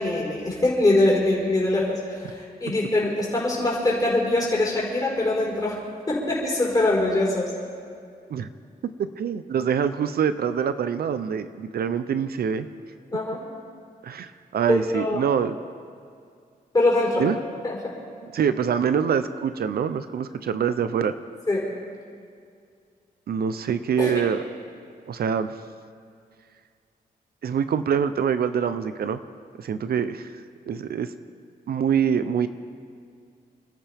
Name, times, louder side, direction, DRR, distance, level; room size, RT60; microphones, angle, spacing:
voice 1, 0.0-5.8 6.1-7.5 13.1-13.4 14.7-15.2 16.7-17.2 17.6-17.8 21.5-21.7 24.0-24.2, left 2 dB, 25° left, -5 dB, 4.7 m, -23 dB
voice 2, 9.2-12.7 14.0-15.6 17.2-17.4 18.3-21.1 23.3-24.4 25.1-25.5 27.4-29.2 29.6-30.3 30.7-31.1 31.7-32.5, right 7 dB, 75° right, 11 dB, 0.7 m, -25 dB
27.5 x 13.5 x 3.6 m, 2.3 s
wide cardioid pair, 150°, 16 cm